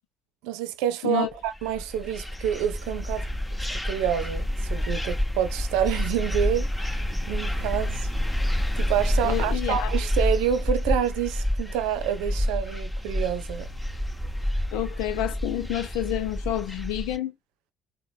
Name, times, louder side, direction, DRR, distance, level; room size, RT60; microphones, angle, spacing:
voice 1, 0.4-3.3 3.7-8.1 8.7-13.7, right 10 dB, 65° right, 0.5 m, -28 dB
sound 1, 1.5-17.2, left 1 dB, 5° left, 0.9 m, -28 dB
voice 2, 9.2-9.9 14.7-17.3, left 13 dB, 65° left, 0.6 m, -29 dB
3.8 x 2.1 x 4.5 m
figure-of-eight pair, 50°, 0 cm